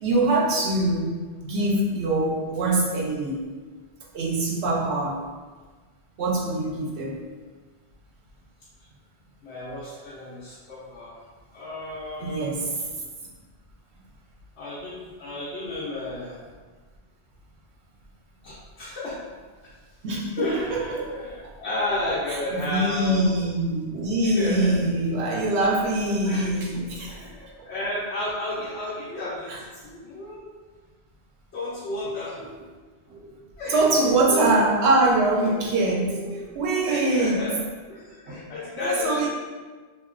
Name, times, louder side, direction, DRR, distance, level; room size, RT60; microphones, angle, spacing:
voice 1, 0.0-3.5 4.1-5.2 6.2-7.2 12.2-12.8 20.0-21.1 22.3-27.3 29.5-29.6 33.1-33.2 33.7-37.4 38.3-38.4 38.8-39.3, right 2 dB, 90° right, -2 dB, 0.9 m, -24 dB
voice 2, 9.4-11.2 11.5-12.5 14.6-16.4 18.4-19.2 19.6-19.7 20.3-23.3 24.2-24.8 25.3-25.9 26.2-26.5 27.1-30.5 31.5-32.4 33.6-33.8 35.4-35.8 36.9-37.6 37.9-39.3, left 2 dB, 85° left, -8 dB, 0.9 m, -32 dB
2.8 x 2.7 x 2.5 m, 1.4 s
omnidirectional pair, 1.1 m